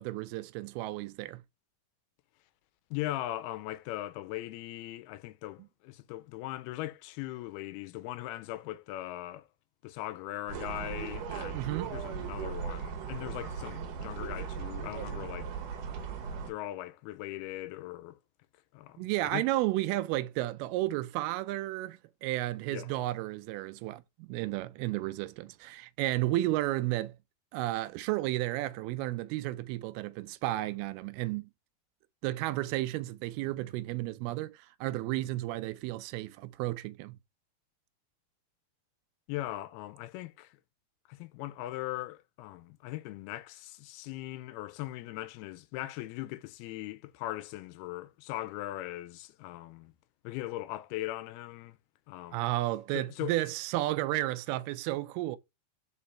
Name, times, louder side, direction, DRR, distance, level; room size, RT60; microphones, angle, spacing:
voice 1, 0.0-1.4 11.5-11.9 19.0-27.1 27.5-31.5 32.2-37.2 52.3-55.4, right 16 dB, 90° right, 2.5 m, -32 dB
voice 2, 2.9-9.5 9.8-15.5 16.2-18.2 18.7-19.4 22.7-22.9 39.3-40.6 41.1-49.9 50.2-51.8 52.1-52.4 52.9-53.3, left 15 dB, 90° left, 2.6 m, -39 dB
sound 1, 10.5-16.5, right 6 dB, 65° right, 2.4 m, -38 dB
5.2 x 4.9 x 4.2 m
omnidirectional pair, 4.4 m